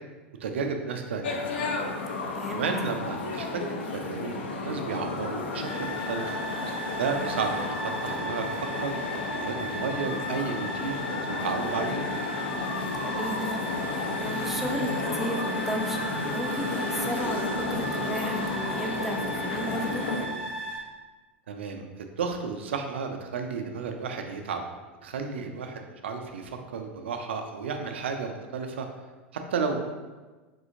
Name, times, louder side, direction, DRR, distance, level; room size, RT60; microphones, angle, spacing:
voice 1, 0.4-1.4 2.5-3.6 3.9-6.3 7.0-7.5 8.0-8.4 8.8-9.0 9.3-12.0 21.5-24.6 25.0-28.9 29.5-29.8, right 5 dB, 70° right, 5 dB, 0.4 m, -32 dB
sound 1, 1.2-20.3, left 3 dB, 65° left, 0.4 m, -32 dB
voice 2, 2.3-2.7 13.0-16.0 16.3-20.1, equal, 5° right, 0 dB, 0.4 m, -34 dB
sound 2, 5.6-20.8, equal, 35° left, 1.0 m, -36 dB
3.7 x 2.7 x 2.5 m, 1.3 s
figure-of-eight pair, 85°, 6 cm